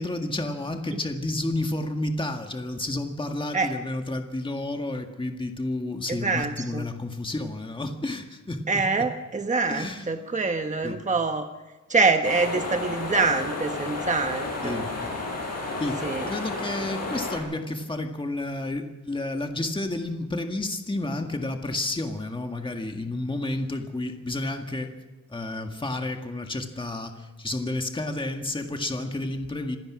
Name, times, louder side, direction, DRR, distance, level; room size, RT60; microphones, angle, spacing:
voice 1, 0.0-8.6 9.7-10.0 10.8-11.0 14.6-14.9 15.8-16.0 16.3-24.9 25.3-29.8, left 2 dB, 15° left, 4 dB, 1.9 m, -31 dB
voice 2, 6.1-6.9 8.7-11.5 11.9-14.9 16.0-16.3, right 4 dB, 25° right, 6 dB, 1.2 m, -25 dB
sound 1, 12.2-17.4, left 3 dB, 55° left, 7.7 m, -32 dB
27.0 x 17.0 x 6.3 m, 1.1 s
wide cardioid pair, 165°, 30 cm